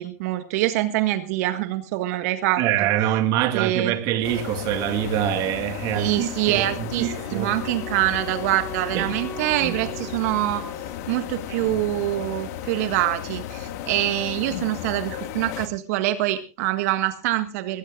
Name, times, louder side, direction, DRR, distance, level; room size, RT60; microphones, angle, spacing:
voice 1, 0.0-2.6 3.5-3.9 5.9-10.7 11.1-17.8, right 15 dB, 60° right, 1.6 m, -25 dB
voice 2, 2.6-7.6 8.9-9.2 9.6-9.9, right 11 dB, 45° right, 2.3 m, -25 dB
sound 1, 4.2-15.7, left 11 dB, 60° left, 1.9 m, -34 dB
Wind instrument woodwind instrument, 6.5-11.5, right 2 dB, 25° left, 5.0 m, -41 dB
23.0 x 18.0 x 2.5 m
hypercardioid pair, 130°, 9 cm